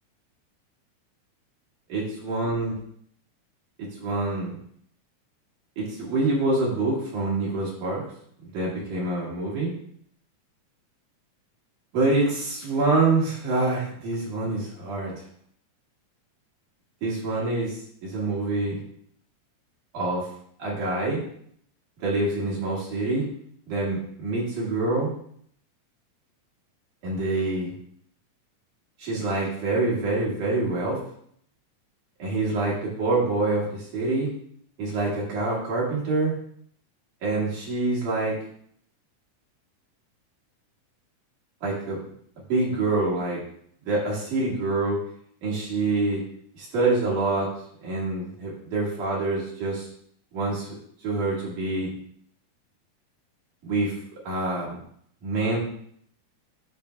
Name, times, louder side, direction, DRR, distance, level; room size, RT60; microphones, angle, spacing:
voice 1, 1.9-2.8 3.8-4.5 5.8-8.0 8.5-9.7 11.9-15.2 17.0-18.8 19.9-20.3 20.6-21.2 22.0-23.2 23.7-25.1 27.0-27.7 29.0-31.0 32.2-34.3 34.8-36.3 37.2-38.4 41.6-42.0 42.5-43.4 43.8-45.0 45.4-46.2 46.5-47.5 47.8-49.9 50.3-50.8 51.0-51.9 53.6-54.0 54.2-54.8 55.2-55.6, right 2 dB, 75° right, -5 dB, 3.3 m, -26 dB
12.0 x 4.3 x 2.3 m, 0.65 s
omnidirectional pair, 3.6 m